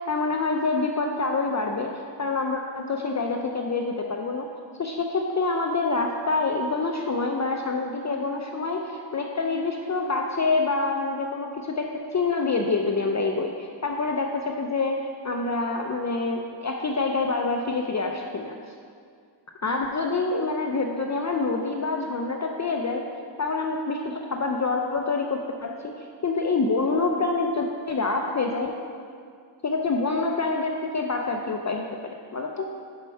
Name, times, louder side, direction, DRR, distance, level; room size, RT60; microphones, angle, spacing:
voice 1, 0.1-1.9 2.2-4.5 4.8-18.5 19.6-23.0 23.4-25.9 26.2-28.8 29.6-32.7, left 3 dB, 35° left, 2 dB, 0.5 m, -26 dB
6.7 x 5.3 x 5.6 m, 2.2 s
wide cardioid pair, 85°, 49 cm